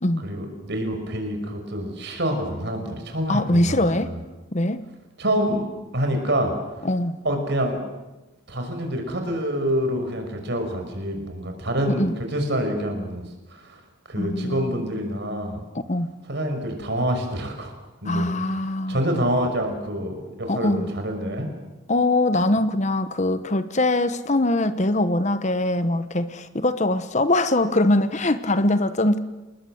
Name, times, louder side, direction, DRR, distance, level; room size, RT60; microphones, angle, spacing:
voice 1, 0.2-4.2 5.2-6.5 7.2-7.8 8.5-13.8 14.1-15.6 16.3-17.8 18.0-21.5, equal, 55° right, 5 dB, 5.7 m, -27 dB
voice 2, 3.3-4.1 4.5-4.8 6.8-7.2 11.9-12.1 14.2-14.8 15.7-16.1 18.1-19.0 20.5-20.9 21.9-29.2, left 1 dB, 35° left, 12 dB, 1.0 m, -22 dB
28.5 x 20.0 x 7.9 m, 1.1 s
head